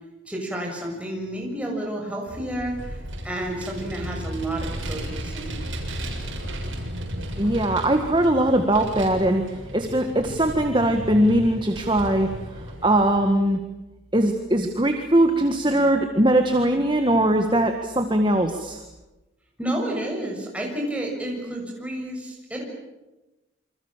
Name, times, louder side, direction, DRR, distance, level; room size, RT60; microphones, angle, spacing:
voice 1, 0.2-5.6 19.6-22.6, right 1 dB, 5° right, 0 dB, 6.8 m, -30 dB
Vehicle, 2.3-13.2, equal, 80° right, 7.1 m, -34 dB
voice 2, 7.4-9.4 9.7-12.3 12.8-13.6 14.1-18.8, right 1 dB, 25° right, 5 dB, 1.8 m, -20 dB
28.0 x 25.5 x 7.5 m, 1.0 s
head